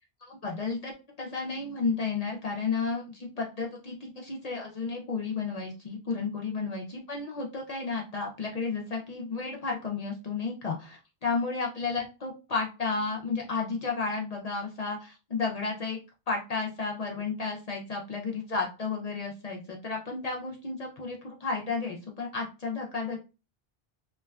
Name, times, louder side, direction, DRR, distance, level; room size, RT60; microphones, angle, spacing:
voice 1, 0.2-0.9 1.2-16.0 16.3-23.2, left 4 dB, 50° left, -1 dB, 0.5 m, -32 dB
3.0 x 2.2 x 2.2 m, 0.31 s
omnidirectional pair, 1.1 m